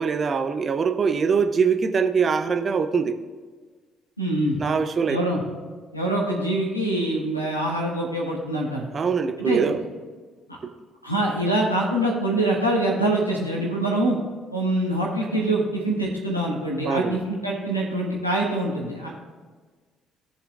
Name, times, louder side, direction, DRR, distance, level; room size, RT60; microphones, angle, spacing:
voice 1, 0.0-3.2 4.6-5.2 8.9-9.8 10.6-10.7 16.8-17.2, right 6 dB, 35° right, 8 dB, 0.7 m, -23 dB
voice 2, 4.2-4.6 5.1-5.4 5.9-8.9 9.4-9.8 11.0-14.2 14.5-19.1, right 1 dB, 90° left, -3 dB, 1.5 m, -24 dB
18.0 x 6.6 x 2.4 m, 1.4 s
figure-of-eight pair, 50°, 0 cm